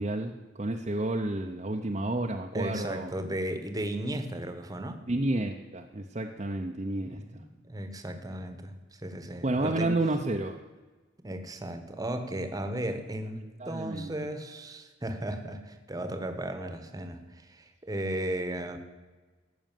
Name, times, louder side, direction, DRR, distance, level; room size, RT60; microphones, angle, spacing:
voice 1, 0.0-3.1 5.1-7.4 9.4-10.6 13.4-14.1, right 2 dB, 35° right, 2 dB, 0.7 m, -31 dB
voice 2, 2.5-5.0 7.1-10.0 11.2-18.8, right 1 dB, 20° right, 8 dB, 1.1 m, -35 dB
14.5 x 6.3 x 9.1 m, 1.3 s
head